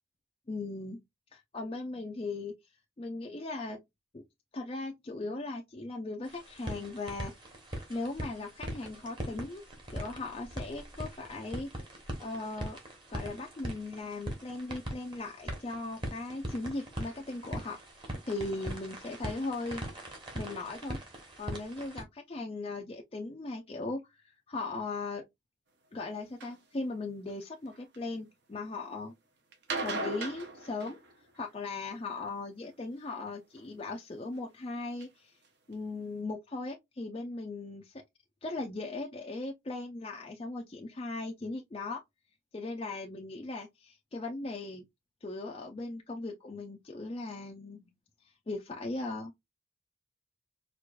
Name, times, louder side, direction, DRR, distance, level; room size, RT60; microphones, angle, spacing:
voice 1, 0.5-1.0 1.3-2.5 3.0-3.8 4.1-4.2 4.5-7.3 7.9-9.6 9.9-11.7 12.2-12.8 13.1-17.8 18.2-19.9 20.3-21.0 21.4-25.2 25.9-29.1 29.8-31.0 31.3-35.3 35.7-37.9 38.4-42.0 42.5-44.8 45.2-47.8 48.2-49.3, left 3 dB, 25° left, 0.4 m, -38 dB
sound 1, 6.2-22.0, right 1 dB, 25° right, 1.1 m, -41 dB
sound 2, 26.4-26.6 27.3-28.0 29.5-31.5 33.1-33.6 34.3-34.4 35.0-35.1 35.4-35.5 35.7-35.8, right 3 dB, 55° right, 0.8 m, -38 dB
4.6 x 2.4 x 2.3 m
head